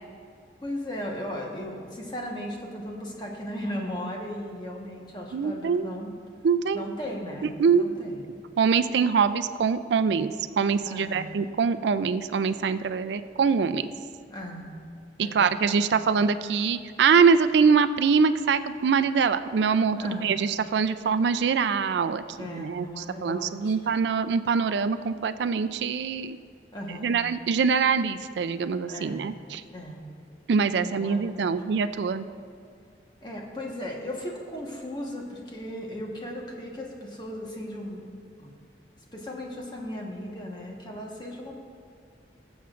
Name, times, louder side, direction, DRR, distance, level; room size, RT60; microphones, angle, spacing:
voice 1, 0.6-6.1 6.7-8.2 10.8-11.3 14.3-14.8 15.2-15.9 20.0-20.3 22.4-23.7 26.7-27.2 28.9-29.3 29.7-30.1 30.7-31.5 33.2-38.0 38.4-38.5 39.1-41.5, left 1 dB, 25° left, -2 dB, 1.2 m, -36 dB
voice 2, 5.3-5.9 6.4-6.8 7.6-7.8 8.6-13.8 15.2-26.4 27.0-29.6 30.5-32.3, right 5 dB, 80° right, 11 dB, 0.4 m, -24 dB
21.0 x 7.2 x 2.5 m, 2.3 s
head